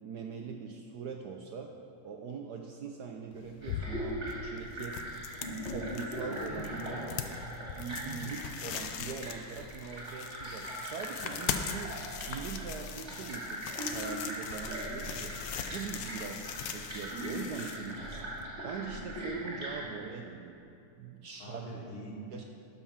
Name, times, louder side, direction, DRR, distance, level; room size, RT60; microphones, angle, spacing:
voice 1, 0.0-1.7 2.0-5.0 5.7-6.8 7.8-12.0 12.3-13.6 13.9-18.2 18.6-20.6 21.0-21.7 22.3-22.4, right 6 dB, 70° right, 3 dB, 0.9 m, -42 dB
sound 1, 3.3-18.5, left 8 dB, 70° left, 1.2 m, -41 dB
sound 2, 3.6-19.8, right 1 dB, 30° right, 2.9 m, -40 dB
voice 2, 6.3-7.3 19.7-19.9 21.4-22.3, equal, 90° left, -1 dB, 2.4 m, -44 dB
12.5 x 5.9 x 5.8 m, 2.6 s
omnidirectional pair, 2.3 m